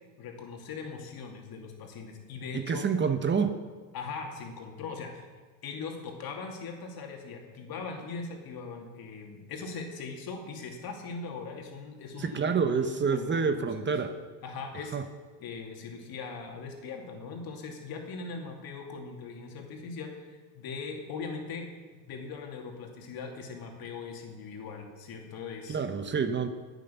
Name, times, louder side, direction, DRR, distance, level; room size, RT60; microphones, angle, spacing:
voice 1, 0.2-3.1 3.9-5.3 5.6-13.7 14.4-15.0 15.4-21.7 21.9-25.9, left 4 dB, 45° left, 1 dB, 2.7 m, -40 dB
voice 2, 2.5-3.6 12.2-14.1 14.9-15.0 25.7-26.5, right 5 dB, 25° right, 10 dB, 0.9 m, -28 dB
10.0 x 9.2 x 6.9 m, 1.4 s
supercardioid pair, 100°, 49 cm